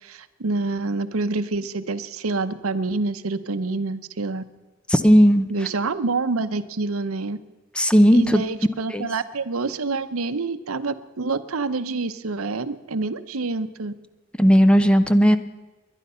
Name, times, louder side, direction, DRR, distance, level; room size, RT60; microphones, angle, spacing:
voice 1, 0.0-4.4 5.5-7.4 8.1-13.9, right 3 dB, 80° right, 12 dB, 0.8 m, -27 dB
voice 2, 4.9-5.4 7.8-8.4 8.9-9.1 14.4-15.4, equal, 5° left, 10 dB, 0.6 m, -15 dB
21.0 x 11.0 x 5.6 m, 1.2 s
head